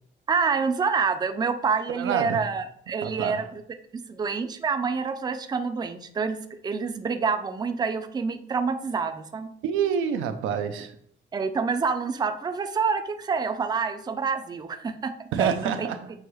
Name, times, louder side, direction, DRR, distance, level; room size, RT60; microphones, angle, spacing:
voice 1, 0.3-3.6 4.1-9.5 11.3-15.1 15.4-15.9, right 5 dB, 20° right, 0.4 m, -27 dB
voice 2, 1.9-2.5 3.0-3.5 9.6-11.0 15.3-16.1, right 8 dB, 85° right, 0.5 m, -27 dB
6.3 x 2.3 x 3.0 m
cardioid pair, 90°, 20 cm